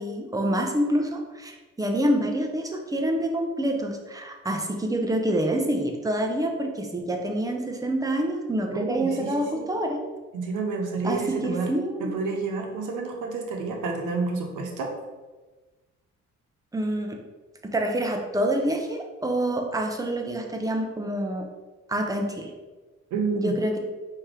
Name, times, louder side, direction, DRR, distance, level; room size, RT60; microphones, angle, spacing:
voice 1, 0.0-10.0 11.0-12.1 16.7-17.2 17.6-21.4 21.9-22.5 23.3-23.8, right 1 dB, 10° right, 2 dB, 0.7 m, -27 dB
voice 2, 8.7-9.7 10.3-11.7 12.0-14.9 23.1-23.6, right 4 dB, 90° right, 2 dB, 0.9 m, -29 dB
4.6 x 2.9 x 3.7 m, 1.2 s
cardioid pair, 90°, 30 cm